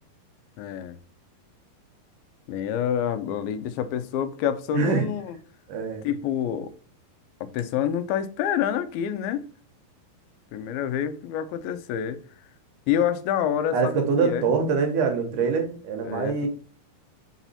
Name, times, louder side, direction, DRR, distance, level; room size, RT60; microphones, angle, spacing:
voice 1, 0.6-1.0 2.5-5.4 6.0-6.7 7.4-9.5 10.5-12.2 12.9-14.5 16.0-16.5, left 9 dB, 90° left, 2.5 m, -27 dB
voice 2, 4.7-5.1 5.7-6.1 13.7-16.5, right 5 dB, 70° right, 2.3 m, -24 dB
5.9 x 4.1 x 4.1 m
omnidirectional pair, 4.2 m